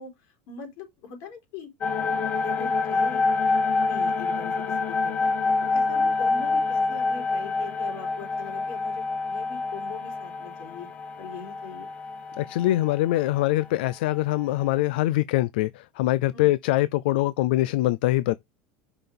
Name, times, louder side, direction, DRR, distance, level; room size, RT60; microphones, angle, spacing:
voice 1, 0.0-1.7 2.0-2.1 2.4-3.2 3.9-10.9 11.2-11.9 16.3-16.5, left 5 dB, 60° left, 3.9 m, -42 dB
sound 1, 1.8-13.2 13.6-13.7 13.9-14.7, left 3 dB, 25° left, 0.7 m, -27 dB
voice 2, 12.4-18.3, left 16 dB, 80° left, 0.4 m, -23 dB
5.9 x 5.6 x 3.5 m
supercardioid pair, 155°, 5 cm